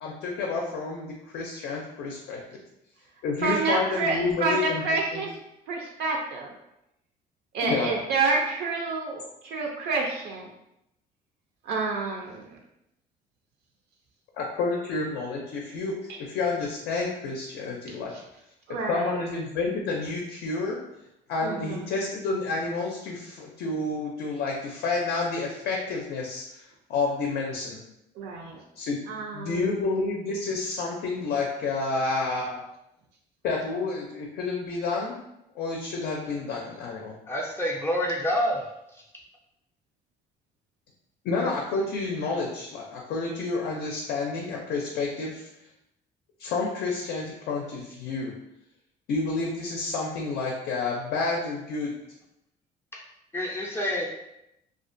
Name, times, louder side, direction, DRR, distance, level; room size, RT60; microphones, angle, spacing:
voice 1, 0.0-2.4 3.2-4.8 5.1-5.2 7.6-7.9 14.4-16.0 16.3-18.1 18.9-20.8 21.3-26.4 26.9-27.8 28.8-29.0 29.3-32.6 33.4-35.2 35.6-37.1 41.2-45.4 46.4-48.3 49.1-51.9, left 3 dB, 75° left, -1 dB, 0.4 m, -29 dB
voice 2, 3.4-5.4 5.7-6.5 7.5-10.5 11.6-12.6 16.1-16.2 17.9-18.2 18.7-19.2 21.4-21.9 28.1-28.6 29.1-29.8, right 3 dB, 75° right, 0 dB, 0.4 m, -29 dB
voice 3, 37.3-38.6 53.3-54.1, equal, 15° left, -3 dB, 0.3 m, -27 dB
2.4 x 2.1 x 2.5 m, 0.85 s
cardioid pair, 110°, 17 cm